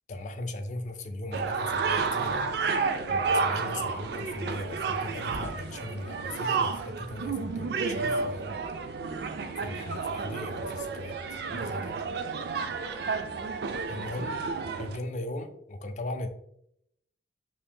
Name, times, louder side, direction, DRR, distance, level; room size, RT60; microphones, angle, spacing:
voice 1, 0.1-2.4 3.1-8.5 9.6-12.0 13.9-14.4 14.8-16.3, left 2 dB, 40° left, 7 dB, 0.4 m, -38 dB
sound 1, 1.3-15.0, right 4 dB, 60° right, 0.3 m, -31 dB
2.8 x 2.7 x 3.6 m, 0.74 s
head